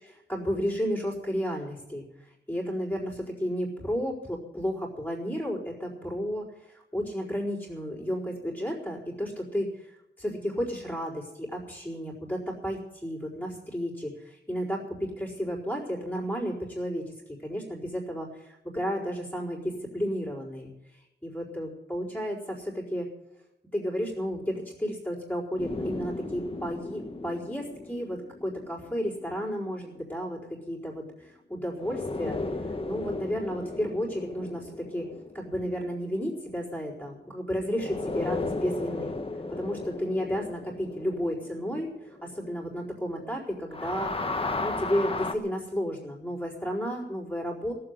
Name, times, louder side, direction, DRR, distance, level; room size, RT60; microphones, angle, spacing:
voice 1, 0.3-17.1 17.4-23.1 23.7-32.4 32.8-35.1 35.3-39.1 39.5-44.1 44.6-47.7, equal, 10° left, -5 dB, 4.4 m, -32 dB
sound 1, 25.6-30.1 31.8-37.3 37.7-43.3 43.6-45.3, left 3 dB, 30° left, 1.3 m, -36 dB
17.0 x 7.8 x 9.7 m, 0.93 s
wide cardioid pair, 115°, 18 cm